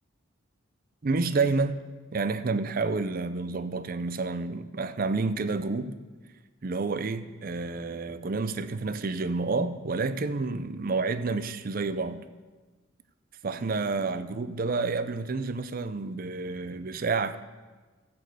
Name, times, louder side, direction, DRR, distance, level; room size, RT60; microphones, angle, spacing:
voice 1, 1.0-1.8 2.1-6.0 6.6-12.2 13.4-17.4, right 3 dB, 45° right, 0.5 m, -29 dB
13.5 x 5.2 x 7.9 m
head